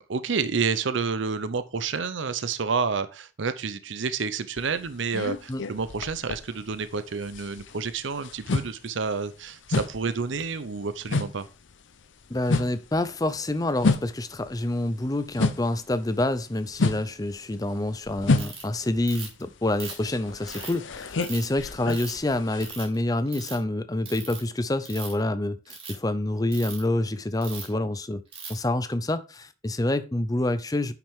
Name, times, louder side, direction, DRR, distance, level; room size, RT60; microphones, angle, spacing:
voice 1, 0.1-11.5, right 5 dB, 75° right, 0.7 m, -29 dB
sound 1, 4.6-7.0 7.2-15.9 16.2-22.8, left 3 dB, 75° left, 0.7 m, -29 dB
voice 2, 12.3-28.2 28.5-30.9, left 1 dB, 20° left, 0.6 m, -27 dB
Ratchet pawl, 18.4-18.6 19.1-19.4 19.8-20.7 21.2-21.4 21.9-22.2 22.6-22.9 23.3-23.5 24.0-24.4 24.8-25.2 25.6-25.9 26.5-26.8 27.4-27.7 28.3-28.6, right 5 dB, 30° right, 3.1 m, -39 dB
10.0 x 5.9 x 3.6 m
head